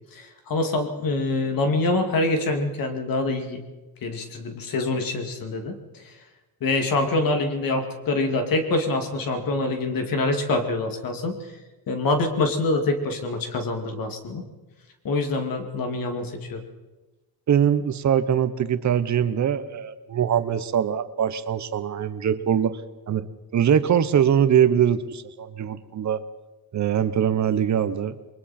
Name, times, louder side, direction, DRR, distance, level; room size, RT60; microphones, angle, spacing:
voice 1, 0.1-3.6 4.0-5.7 6.6-11.3 11.9-14.4 15.0-16.6, left 2 dB, 60° left, 5 dB, 2.5 m, -25 dB
voice 2, 17.5-22.8 23.1-23.3 23.5-26.2 26.7-28.2, right 9 dB, 50° right, 13 dB, 1.0 m, -22 dB
29.0 x 22.5 x 4.4 m, 1.1 s
cardioid pair, 165°, 38 cm